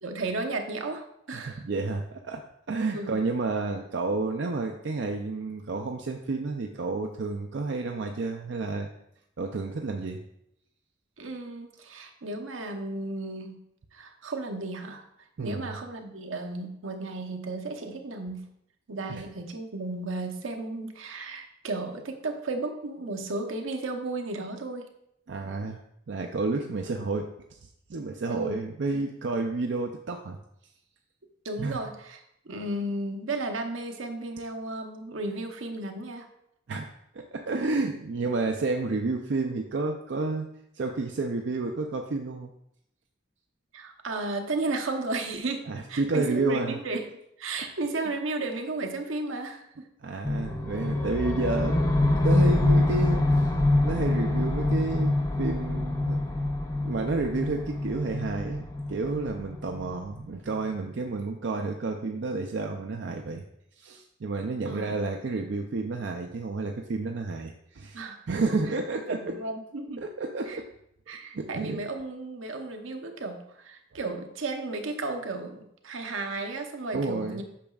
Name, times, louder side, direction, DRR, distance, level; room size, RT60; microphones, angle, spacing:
voice 1, 0.0-1.6 2.9-3.2 11.2-13.6 13.9-15.0 15.4-18.5 18.9-24.9 28.3-28.7 31.4-36.3 43.7-47.1 47.4-49.9 64.6-65.0 67.9-68.2 68.7-68.8 69.1-70.0 70.5-70.6 71.1-77.4, right 2 dB, 85° right, 4 dB, 0.8 m, -34 dB
voice 2, 1.3-2.4 2.7-8.9 9.4-10.2 15.4-15.8 19.1-19.2 25.3-25.8 26.1-27.3 27.9-30.4 31.6-31.8 36.7-36.9 37.1-40.5 40.8-42.5 45.7-46.8 50.0-53.5 53.8-56.2 56.8-63.4 63.8-68.0 68.3-69.2 70.0-70.7 71.3-71.8 76.9-77.4, right 3 dB, 65° right, 3 dB, 0.5 m, -30 dB
sound 1, 50.2-60.3, left 2 dB, 15° left, 0.4 m, -25 dB
8.5 x 6.0 x 2.3 m, 0.77 s
head